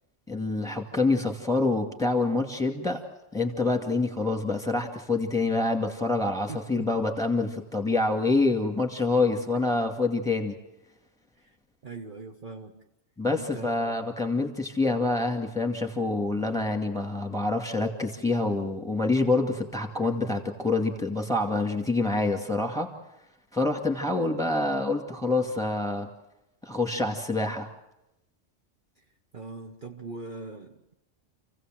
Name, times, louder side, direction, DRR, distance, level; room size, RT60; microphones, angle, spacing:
voice 1, 0.3-3.0 3.3-10.5 13.2-22.9 23.5-26.1 26.6-27.7, left 3 dB, 5° left, 4 dB, 2.3 m, -26 dB
voice 2, 6.5-7.0 11.8-12.8 13.3-14.0 29.3-30.9, right 3 dB, 45° right, 2 dB, 1.3 m, -41 dB
28.0 x 16.0 x 7.7 m, 0.90 s
omnidirectional pair, 1.2 m